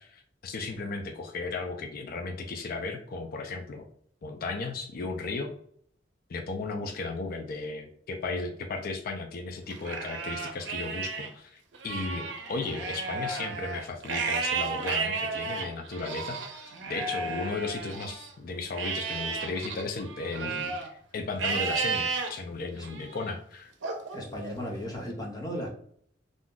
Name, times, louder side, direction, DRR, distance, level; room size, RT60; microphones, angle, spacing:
voice 1, 0.0-3.9 4.2-5.5 6.3-20.7 21.1-23.7, left 3 dB, 55° left, 4 dB, 0.4 m, -35 dB
Livestock farm animals working animals, 9.7-11.3 11.7-18.3 18.8-20.9 21.4-22.3 22.8-23.3 23.8-24.9, right 4 dB, 75° right, 0.5 m, -33 dB
voice 2, 24.1-25.7, equal, 20° left, -1 dB, 0.7 m, -36 dB
2.5 x 2.3 x 3.7 m, 0.62 s
head